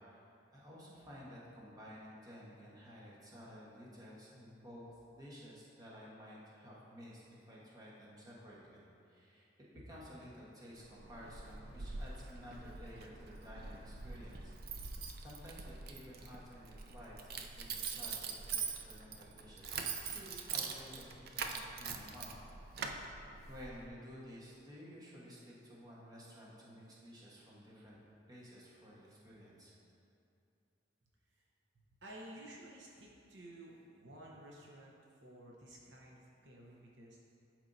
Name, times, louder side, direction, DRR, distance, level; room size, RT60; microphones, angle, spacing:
voice 1, 0.5-9.4 9.7-14.5 15.2-17.2 17.5-22.4 23.5-28.0 28.3-29.7, equal, 20° right, -6 dB, 1.2 m, -53 dB
Keys jangling, 10.8-23.9, right 5 dB, 55° right, 0.4 m, -44 dB
voice 2, 31.7-34.9 35.2-37.2, right 1 dB, 70° right, -3 dB, 0.9 m, -53 dB
11.5 x 4.5 x 2.7 m, 2.7 s
head